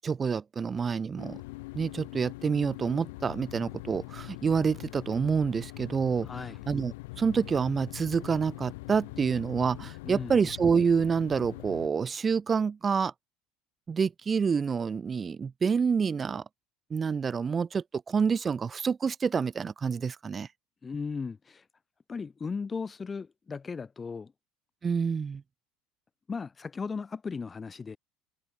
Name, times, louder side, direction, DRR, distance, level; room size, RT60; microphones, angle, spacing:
voice 1, 0.0-1.4 1.7-6.3 6.7-13.1 13.9-16.4 16.9-20.5 24.8-25.4, right 6 dB, 30° right, 0.4 m, -28 dB
sound 1, 1.2-11.9, left 23 dB, 80° left, 4.0 m, -43 dB
voice 2, 6.2-6.6 10.0-10.4 20.8-21.6 22.1-24.3 26.3-28.0, left 5 dB, 25° left, 1.5 m, -36 dB
supercardioid pair, 95°, 0 cm